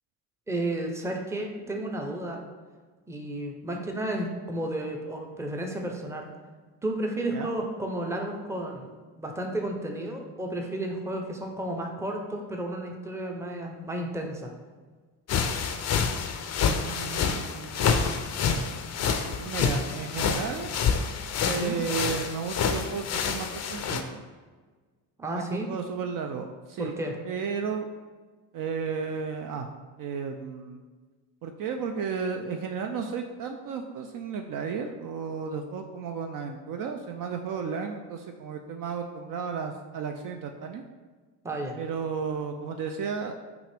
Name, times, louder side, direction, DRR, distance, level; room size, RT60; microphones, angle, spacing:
voice 1, 0.5-2.4 3.1-6.3 6.8-8.9 9.2-14.5 21.5-21.8 25.2-25.7 26.8-27.2 41.4-41.8, right 1 dB, 5° right, 2 dB, 0.6 m, -32 dB
sound 1, 15.3-24.0, left 6 dB, 40° left, 0.5 m, -28 dB
voice 2, 16.6-18.0 19.2-20.7 21.4-24.2 25.3-26.9 27.3-27.9 28.5-29.7 30.0-30.8 31.4-40.8 41.8-43.3, right 6 dB, 50° right, 4 dB, 0.5 m, -33 dB
5.9 x 2.5 x 3.3 m, 1.4 s
supercardioid pair, 85°, 43 cm